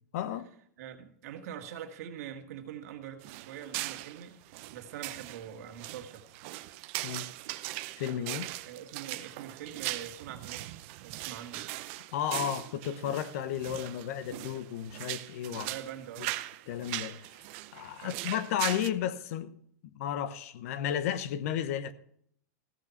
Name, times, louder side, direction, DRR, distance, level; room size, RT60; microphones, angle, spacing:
voice 1, 0.1-0.5 7.0-7.3 8.0-8.5 12.1-15.7 16.7-17.3 17.7-19.6 19.9-21.9, left 10 dB, 60° left, 0.9 m, -33 dB
voice 2, 0.8-4.4 4.7-6.4 8.7-11.7 15.5-16.4 18.0-18.2, right 9 dB, 65° right, 1.7 m, -44 dB
sound 1, 3.2-18.9, right 18 dB, 45° right, 0.6 m, -40 dB
15.0 x 6.7 x 5.8 m
supercardioid pair, 155°, 9 cm